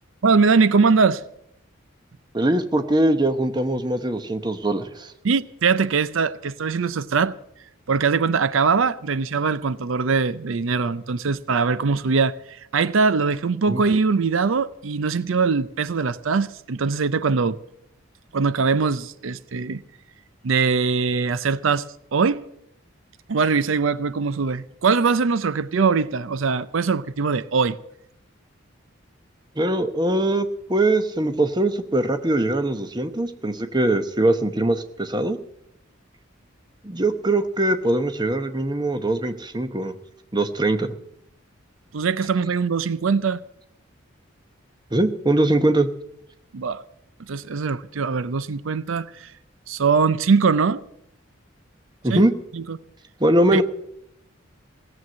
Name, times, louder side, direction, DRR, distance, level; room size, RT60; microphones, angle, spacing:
voice 1, 0.2-1.2 5.2-7.3 7.9-12.3 12.7-17.6 18.3-19.8 20.4-21.9 22.1-22.4 23.3-27.8 41.9-43.4 46.5-46.8 47.3-49.3 49.7-50.8 52.1-52.2 52.5-52.8 53.5-53.6, right 5 dB, 75° right, 0.5 m, -21 dB
voice 2, 2.3-5.1 13.7-13.8 29.6-35.4 36.8-39.9 40.3-40.9 44.9-45.9 52.0-52.3 53.2-53.6, right 1 dB, 20° right, 0.8 m, -22 dB
17.0 x 7.8 x 8.5 m
head